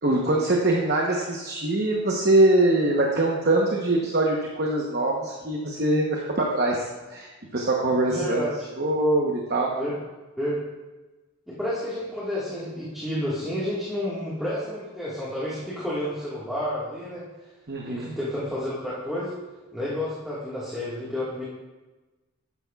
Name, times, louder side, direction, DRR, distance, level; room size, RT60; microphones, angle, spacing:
voice 1, 0.0-7.3 7.5-8.5 8.8-9.7 17.7-18.2, right 2 dB, 50° right, -1 dB, 1.0 m, -23 dB
voice 2, 8.0-8.7 9.8-9.9 10.4-10.6 11.5-17.2 17.9-19.3 19.7-21.4, left 1 dB, ahead, -10 dB, 1.7 m, -30 dB
12.0 x 9.7 x 2.4 m, 1.2 s
head